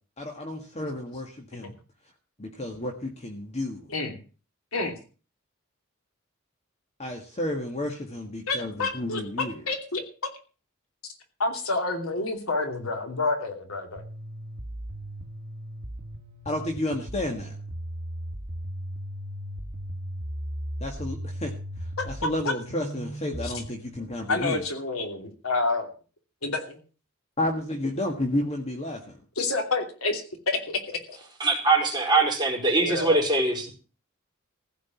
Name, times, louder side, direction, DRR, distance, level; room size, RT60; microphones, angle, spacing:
voice 1, 0.2-1.7 2.4-3.9 7.0-9.6 16.4-17.6 20.8-21.5 22.0-24.6 27.4-29.2, left 1 dB, 30° left, 3 dB, 1.7 m, -31 dB
voice 2, 8.5-10.0 11.4-14.0 22.0-22.3 23.4-23.5 24.3-25.9 26.4-26.8 29.4-31.2 32.8-33.2, left 3 dB, 80° left, 4 dB, 2.7 m, -29 dB
sound 1, 14.0-24.0, equal, 50° right, 1.9 m, -37 dB
voice 3, 31.4-33.7, right 3 dB, 20° right, 0 dB, 4.1 m, -22 dB
15.5 x 5.2 x 9.5 m, 0.37 s
head